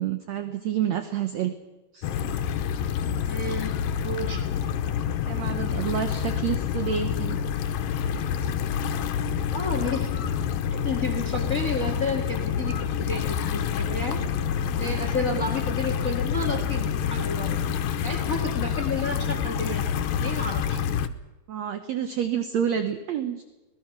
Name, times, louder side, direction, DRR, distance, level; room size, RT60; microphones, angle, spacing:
voice 1, 0.0-1.5 1.9-2.1 5.3-7.4 15.2-15.5 21.5-23.4, right 9 dB, 65° right, 8 dB, 1.9 m, -29 dB
sound 1, 2.0-21.1, left 8 dB, 90° left, 2.7 m, -27 dB
voice 2, 3.2-4.4 9.5-10.1 10.7-14.2 14.8-17.6 18.0-19.8 20.2-20.8, left 3 dB, 30° left, 4 dB, 1.7 m, -31 dB
25.0 x 18.5 x 6.0 m, 1.1 s
omnidirectional pair, 4.0 m